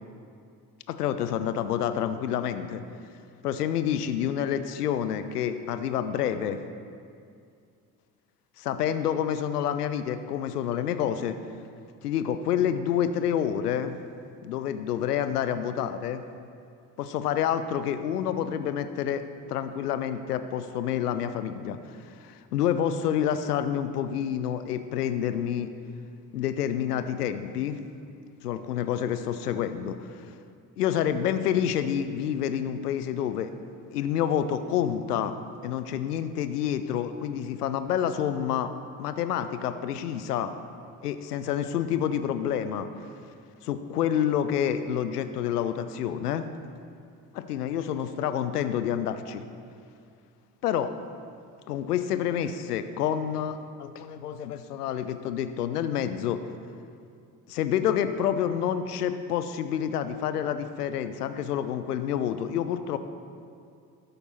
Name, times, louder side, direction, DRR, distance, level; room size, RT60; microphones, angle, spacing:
voice 1, 0.9-2.8 3.4-6.6 8.6-11.4 12.0-14.0 14.4-16.2 17.0-19.2 19.5-21.8 22.1-25.7 26.3-27.8 28.4-30.3 30.8-33.5 33.9-35.4 35.6-38.7 39.0-40.5 41.0-42.9 43.6-46.5 47.3-49.4 50.6-50.9 51.7-56.4 57.5-63.0, left 9 dB, 80° left, 11 dB, 0.6 m, -28 dB
12.5 x 6.7 x 4.1 m, 2.4 s
figure-of-eight pair, 50°, 46 cm